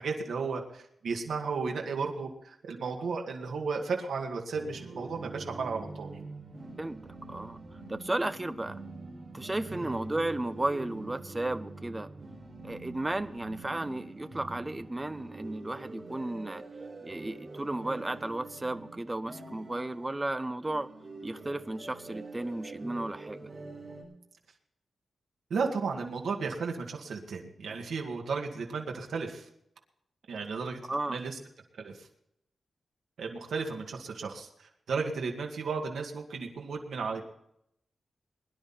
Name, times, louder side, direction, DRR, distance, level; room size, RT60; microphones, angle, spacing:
voice 1, 0.0-6.1 9.7-10.0 25.5-29.5 30.3-30.8 31.1-31.4 31.8-32.1 33.2-37.2, right 4 dB, 85° right, 2 dB, 2.1 m, -34 dB
sound 1, 4.5-24.0, right 3 dB, 35° right, 6.2 m, -45 dB
voice 2, 7.9-8.8 9.3-12.1 12.6-16.6 17.0-20.9 21.2-23.5 30.9-31.2, right 2 dB, 15° right, 12 dB, 0.7 m, -34 dB
22.0 x 11.0 x 4.4 m, 0.76 s
wide cardioid pair, 150°, 0 cm